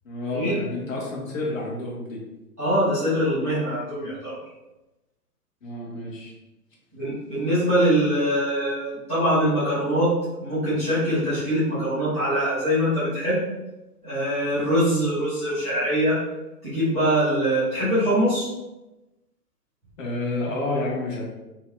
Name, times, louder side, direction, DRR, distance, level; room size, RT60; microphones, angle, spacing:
voice 1, 0.0-2.2 5.6-6.3 20.0-21.2, left 2 dB, 55° left, -3 dB, 0.9 m, -29 dB
voice 2, 2.6-4.4 6.9-10.1 10.4-13.4 14.0-16.2 16.6-18.5, equal, 10° right, -18 dB, 0.4 m, -23 dB
2.8 x 2.1 x 3.0 m, 1.0 s
figure-of-eight pair, 135°, 49 cm